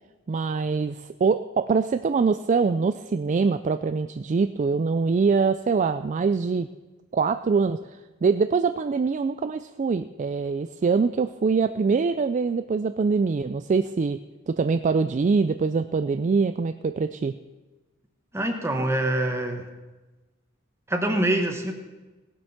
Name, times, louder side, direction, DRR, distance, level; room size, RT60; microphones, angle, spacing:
voice 1, 0.3-6.7 7.1-7.8 8.2-14.2 14.5-17.3, right 4 dB, 35° right, 10 dB, 0.3 m, -24 dB
voice 2, 18.3-19.7 20.9-21.7, right 1 dB, 10° right, 3 dB, 1.4 m, -25 dB
17.5 x 7.8 x 5.8 m, 1.2 s
head